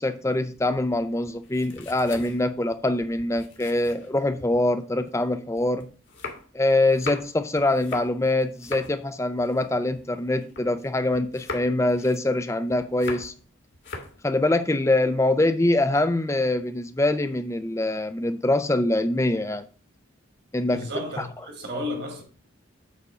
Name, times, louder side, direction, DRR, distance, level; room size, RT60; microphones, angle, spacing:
voice 1, 0.0-5.9 6.5-13.3 14.2-19.6 20.5-20.8 21.2-21.3, left 2 dB, 15° left, 0.5 m, -24 dB
sound 1, 0.6-4.6 5.1-10.9 11.1-13.5 13.7-14.2, left 3 dB, 60° left, 1.7 m, -41 dB
voice 2, 20.7-22.2, left 1 dB, 50° right, 2.1 m, -32 dB
8.3 x 3.8 x 5.5 m
head